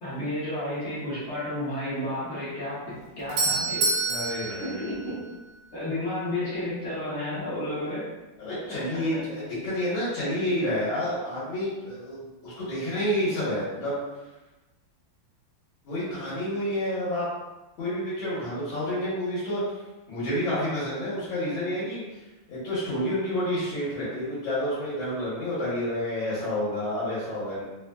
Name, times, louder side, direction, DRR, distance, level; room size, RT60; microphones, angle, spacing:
voice 1, 0.0-3.9 4.6-5.2 5.7-8.1 8.6-9.1 9.5-9.6, left 1 dB, 55° left, -9 dB, 0.8 m, -32 dB
Doorbell, 2.9-5.8, right 3 dB, 80° right, 1.4 m, -28 dB
voice 2, 4.0-5.1 8.4-14.0 15.8-17.3 17.8-19.6 20.1-27.6, left 1 dB, 75° left, -10 dB, 1.8 m, -29 dB
3.7 x 2.1 x 2.2 m, 1.1 s
omnidirectional pair, 2.2 m